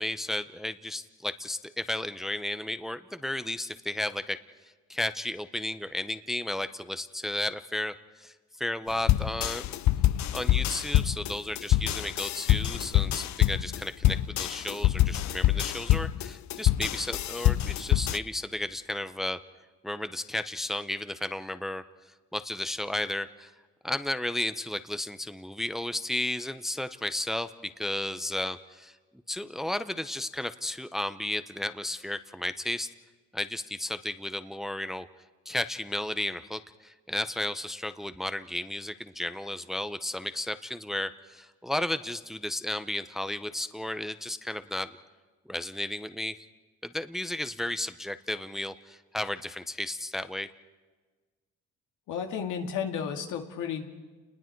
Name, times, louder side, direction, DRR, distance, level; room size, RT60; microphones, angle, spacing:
voice 1, 0.0-4.4 4.9-9.7 10.3-19.4 19.8-21.8 22.3-23.5 23.8-29.0 29.3-32.9 33.3-35.1 35.5-44.9 45.5-46.4 46.8-50.5, left 1 dB, ahead, 11 dB, 0.8 m, -33 dB
sound 1, 9.1-18.2, left 13 dB, 70° left, 0.6 m, -25 dB
voice 2, 52.1-53.9, left 7 dB, 85° left, 4 dB, 2.1 m, -33 dB
29.5 x 20.5 x 4.6 m, 1.4 s
cardioid pair, 90°, 30 cm